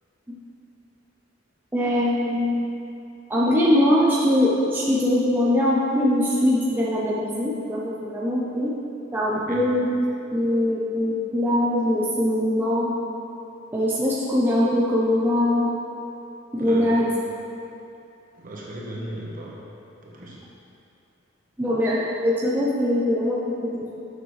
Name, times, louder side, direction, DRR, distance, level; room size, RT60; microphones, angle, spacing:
voice 1, 1.7-2.6 3.3-8.7 9.1-9.9 10.3-12.9 13.7-15.7 16.5-17.1 21.6-24.0, left 1 dB, 10° right, -7 dB, 0.6 m, -22 dB
voice 2, 9.3-9.6 16.6-17.0 18.3-19.7 20.0-20.4, right 1 dB, 45° right, -4 dB, 1.2 m, -37 dB
7.2 x 6.6 x 3.2 m, 2.8 s
head